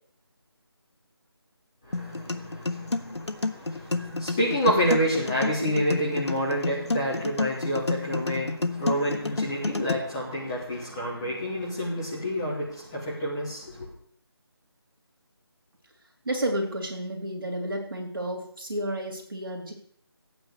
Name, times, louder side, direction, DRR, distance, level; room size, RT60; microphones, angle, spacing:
sound 1, 1.9-9.9, left 3 dB, 90° left, 1.4 m, -30 dB
voice 1, 1.9-13.9, equal, 10° left, -8 dB, 2.3 m, -28 dB
voice 2, 16.3-19.7, right 1 dB, 55° right, 1 dB, 4.0 m, -31 dB
15.5 x 9.3 x 6.8 m, 0.63 s
figure-of-eight pair, 180°, 14 cm